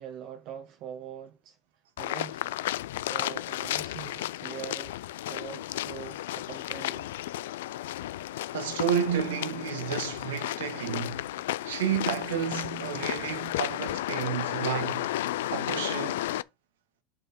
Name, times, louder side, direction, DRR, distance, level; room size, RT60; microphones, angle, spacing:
voice 1, 0.0-1.6 2.0-2.5 3.1-5.0 5.3-7.1, right 9 dB, 55° right, 1.2 m, -43 dB
sound 1, 2.0-16.4, left 14 dB, 80° left, 0.4 m, -33 dB
voice 2, 8.5-11.3 11.6-15.1 15.5-16.2, right 8 dB, 85° right, 1.6 m, -31 dB
9.0 x 5.6 x 4.3 m
hypercardioid pair, 95°, 0 cm